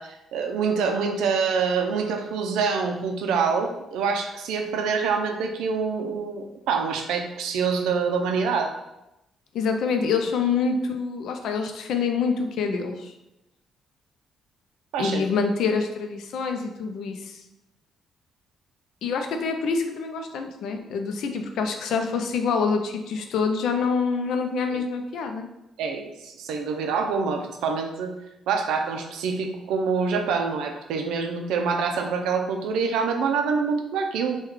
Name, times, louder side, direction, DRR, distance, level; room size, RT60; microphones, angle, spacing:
voice 1, 0.0-8.7 14.9-15.3 24.7-24.8 25.8-28.1 28.5-34.4, right 5 dB, 90° right, 4 dB, 0.4 m, -26 dB
voice 2, 9.5-13.1 15.0-17.4 19.0-25.5, left 5 dB, 80° left, 5 dB, 0.4 m, -26 dB
3.1 x 2.2 x 3.5 m, 0.91 s
cardioid pair, 90°, 0 cm